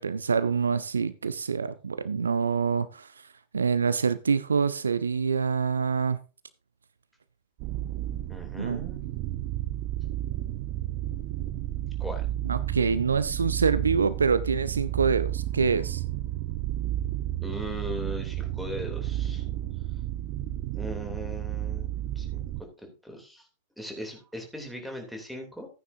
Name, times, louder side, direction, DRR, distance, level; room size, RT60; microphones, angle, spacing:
voice 1, 0.0-3.1 3.5-6.2 8.6-8.9 12.4-16.0, right 5 dB, 75° right, 0.5 m, -26 dB
sound 1, 7.6-22.6, right 13 dB, 45° right, 0.8 m, -32 dB
voice 2, 8.3-9.1 12.0-12.3 17.4-19.5 20.7-23.5 23.8-25.7, equal, ahead, 3.0 m, -39 dB
14.5 x 9.5 x 2.7 m
figure-of-eight pair, 90°, 0 cm